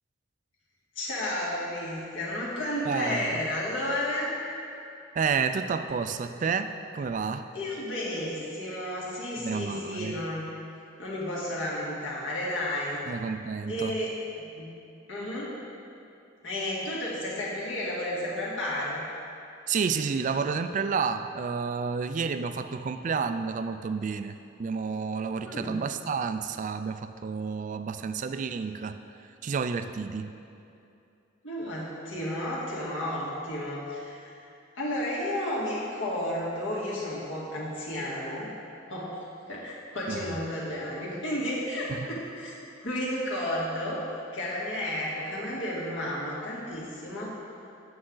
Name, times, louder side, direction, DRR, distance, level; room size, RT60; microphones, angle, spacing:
voice 1, 1.0-4.3 7.5-10.5 11.0-13.1 13.7-14.1 14.6-14.8 15.1-15.6 16.4-19.1 25.4-25.8 31.4-34.4 34.8-38.5 38.9-39.2 39.5-42.5 42.8-44.0 44.3-47.4, left 1 dB, 70° left, -6 dB, 1.9 m, -32 dB
voice 2, 2.9-3.4 5.1-7.5 9.4-10.1 13.1-13.9 19.7-29.0 29.4-30.3 40.1-40.4 41.9-42.1, right 5 dB, 40° right, 10 dB, 0.3 m, -30 dB
8.6 x 7.5 x 3.8 m, 2.7 s
head